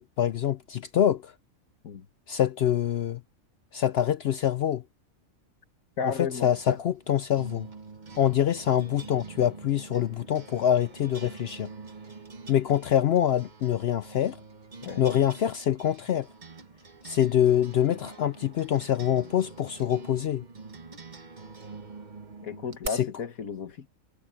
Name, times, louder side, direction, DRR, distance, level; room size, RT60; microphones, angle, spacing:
voice 1, 0.0-1.3 2.3-3.2 3.7-4.8 6.0-7.7 8.2-11.7 12.5-14.4 15.0-16.3 17.0-20.4 22.9-23.1, left 10 dB, 65° left, 0.6 m, -25 dB
voice 2, 6.0-6.8 14.8-15.0 22.4-23.9, left 6 dB, 85° left, 1.9 m, -33 dB
sound 1, 6.4-22.9, right 4 dB, 35° right, 1.3 m, -45 dB
omnidirectional pair, 1.5 m